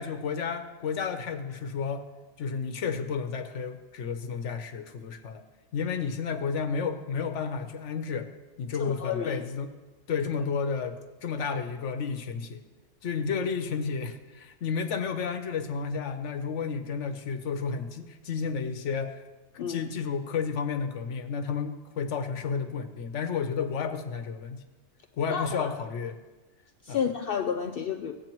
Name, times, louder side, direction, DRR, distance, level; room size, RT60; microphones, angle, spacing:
voice 1, 0.0-2.1 2.4-5.4 5.7-8.3 8.6-9.7 10.1-12.6 13.0-19.2 19.5-24.6 25.2-26.2 26.9-27.0, left 5 dB, 80° left, 9 dB, 1.0 m, -32 dB
voice 2, 8.8-9.4 19.6-19.9 25.3-25.7 26.8-28.1, left 7 dB, 60° left, 5 dB, 0.7 m, -31 dB
17.0 x 8.5 x 3.0 m, 1.2 s
omnidirectional pair, 1.2 m